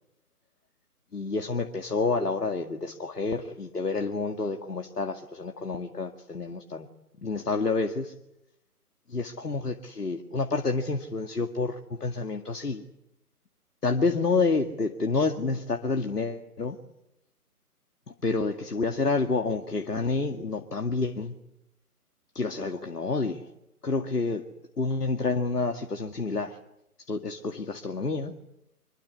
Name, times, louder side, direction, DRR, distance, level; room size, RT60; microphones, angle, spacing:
voice 1, 1.1-6.9 7.2-8.1 9.1-12.8 13.8-16.8 18.2-21.4 22.3-23.4 23.8-24.4 24.8-26.6 27.1-28.3, left 3 dB, 85° left, 6 dB, 2.3 m, -29 dB
26.5 x 22.5 x 9.7 m, 0.82 s
figure-of-eight pair, 145°, 46 cm